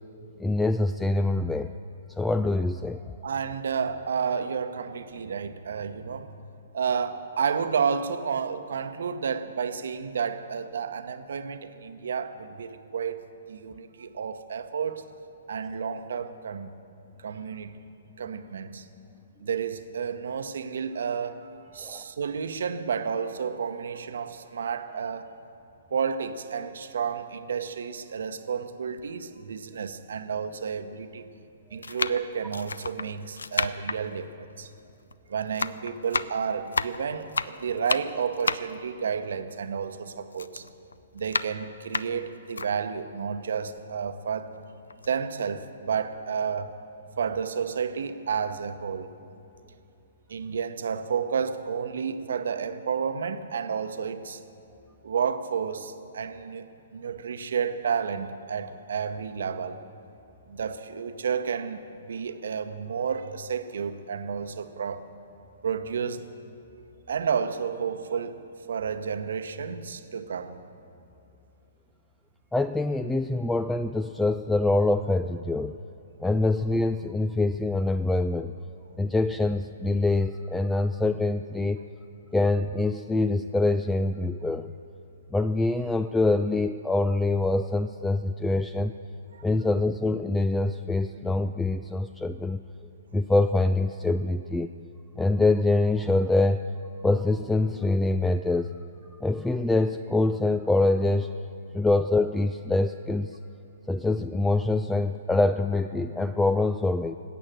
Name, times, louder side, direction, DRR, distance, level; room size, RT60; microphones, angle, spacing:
voice 1, 0.4-1.7 2.2-3.2 21.8-22.0 72.5-75.8 76.2-78.5 79.0-81.8 82.3-84.7 85.3-88.9 89.4-92.6 93.1-94.7 95.2-96.7 97.0-98.7 99.2-101.4 101.7-103.4 103.9-107.2, left 2 dB, 5° left, 11 dB, 0.3 m, -25 dB
voice 2, 3.2-6.3 6.7-15.0 15.5-16.7 17.2-17.8 18.2-18.9 19.4-25.3 25.9-31.2 31.7-34.7 35.3-40.6 41.1-44.5 45.1-46.7 47.2-49.1 50.3-54.4 55.0-59.8 60.5-65.0 65.6-66.2 67.1-68.4 68.7-70.6 89.3-89.4, right 6 dB, 65° right, 9 dB, 0.9 m, -31 dB
sound 1, 29.0-29.1 30.0-30.1 31.0-31.3 31.8-35.2 35.4-40.0 40.3-42.7 43.2-43.3 43.6-44.6 44.9-45.1, left 4 dB, 75° left, 0.4 m, -32 dB
19.5 x 8.6 x 7.6 m, 2.6 s
figure-of-eight pair, 120°, 0 cm